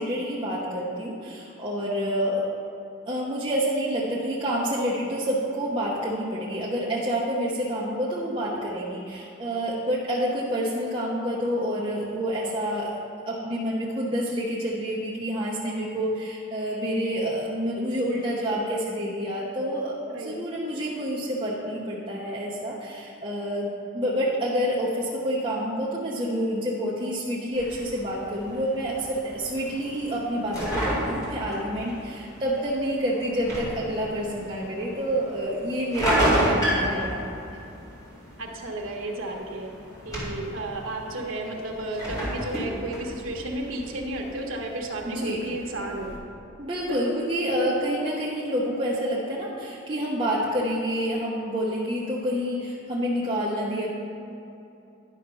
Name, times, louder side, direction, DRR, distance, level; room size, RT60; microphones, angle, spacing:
voice 1, 0.0-2.5 3.1-12.9 13.3-37.4 45.1-45.4 46.6-53.9, equal, 25° right, -6 dB, 0.9 m, -28 dB
sound 1, 27.5-46.2, equal, 15° left, 2.2 m, -32 dB
voice 2, 36.3-37.2 38.4-39.7 40.0-46.1 46.9-47.1 47.5-47.6, right 1 dB, 75° right, 0 dB, 1.3 m, -33 dB
10.5 x 5.8 x 5.4 m, 2.8 s
head